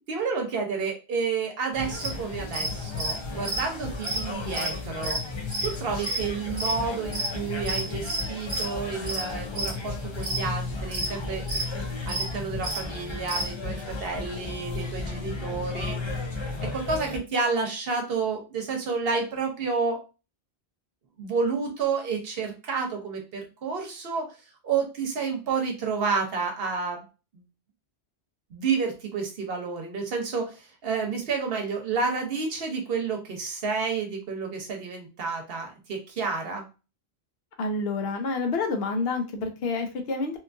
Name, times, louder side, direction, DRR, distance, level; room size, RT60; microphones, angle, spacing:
voice 1, 0.1-5.2 5.6-11.4 12.0-16.0 16.6-20.0 21.2-24.3 24.6-27.1 28.5-36.6, right 5 dB, 65° right, 2 dB, 0.9 m, -30 dB
sound 1, 1.7-17.2, left 3 dB, 45° left, 0.4 m, -34 dB
sound 2, 2.0-13.5, right 2 dB, 40° right, 1.0 m, -31 dB
voice 2, 37.6-40.4, left 3 dB, 70° left, 5 dB, 0.8 m, -28 dB
2.8 x 2.3 x 2.5 m, 0.31 s
omnidirectional pair, 1.1 m